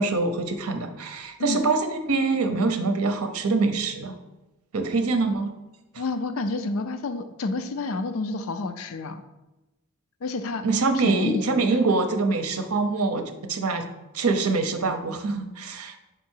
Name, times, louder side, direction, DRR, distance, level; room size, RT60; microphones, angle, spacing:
voice 1, 0.0-4.1 4.7-5.5 10.6-13.9 14.1-15.9, right 3 dB, 80° right, 7 dB, 0.7 m, -24 dB
voice 2, 6.0-9.2 10.2-10.6 10.9-11.5, left 3 dB, 65° left, 9 dB, 0.4 m, -29 dB
5.1 x 4.7 x 4.4 m, 1.0 s
head